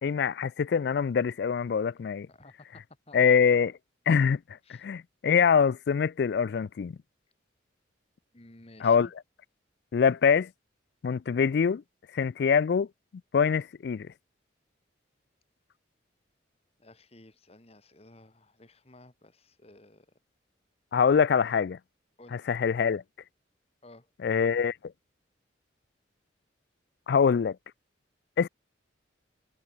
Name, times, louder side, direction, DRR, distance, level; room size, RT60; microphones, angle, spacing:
voice 1, 0.0-2.3 3.1-3.7 4.1-4.4 4.7-7.0 8.8-9.1 9.9-10.5 11.0-11.8 12.1-12.9 13.3-14.1 20.9-21.8 22.3-23.0 24.2-24.7 27.1-27.6 28.4-28.5, left 6 dB, 55° left, 0.3 m, -24 dB
voice 2, 2.3-3.4 4.6-4.9 8.3-9.1 16.8-20.1 22.2-22.4 23.8-24.1, left 2 dB, 30° left, 1.7 m, -54 dB
head